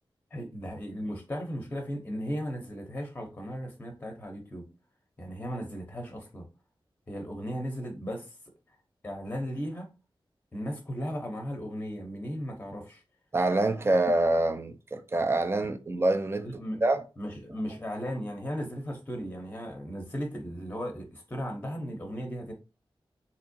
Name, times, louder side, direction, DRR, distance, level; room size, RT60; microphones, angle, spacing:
voice 1, 0.3-4.6 5.2-6.4 7.1-8.4 9.0-9.9 10.5-13.0 16.4-16.9 17.2-22.5, equal, 20° left, 0.7 m, -36 dB
voice 2, 13.3-16.5 16.8-17.0, right 2 dB, 30° right, 0.4 m, -26 dB
3.5 x 2.9 x 2.6 m
wide cardioid pair, 125°, 9 cm